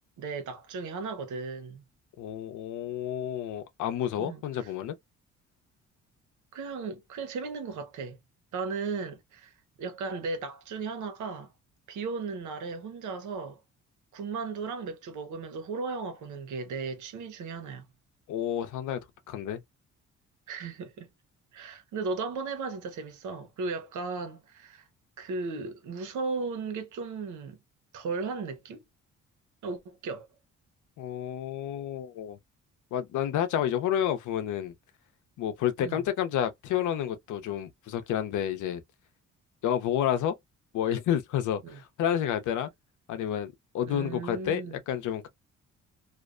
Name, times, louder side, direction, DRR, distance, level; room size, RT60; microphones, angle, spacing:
voice 1, 0.2-1.8 4.2-4.7 6.5-8.2 8.5-9.5 9.8-11.5 11.9-13.6 14.1-17.8 20.5-21.1 21.5-24.9 25.2-27.6 27.9-28.8 29.6-30.3 35.8-36.0 41.6-41.8 43.9-44.8, right 4 dB, 75° right, 0.8 m, -36 dB
voice 2, 2.2-5.0 18.3-19.0 19.3-19.6 31.0-32.4 32.9-34.7 35.4-38.8 39.6-40.3 40.7-42.7 43.1-45.3, left 10 dB, 80° left, 0.6 m, -30 dB
2.5 x 2.1 x 2.4 m
cardioid pair, 90°, 30 cm